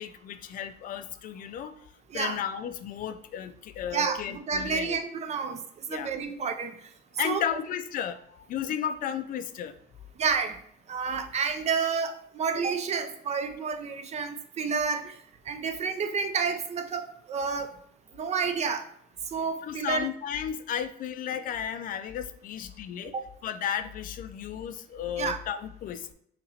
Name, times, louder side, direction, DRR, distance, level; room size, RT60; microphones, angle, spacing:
voice 1, 0.0-5.0 5.9-6.1 7.2-9.7 19.6-23.1 23.4-26.1, left 9 dB, 55° left, 11 dB, 0.4 m, -34 dB
voice 2, 3.9-5.6 5.9-6.7 7.2-7.4 10.2-10.6 10.9-15.1 15.5-17.7 18.2-18.8 19.3-20.1 25.2-25.4, right 5 dB, 40° right, 8 dB, 0.5 m, -30 dB
5.7 x 2.9 x 2.7 m, 0.67 s
cardioid pair, 110°, 17 cm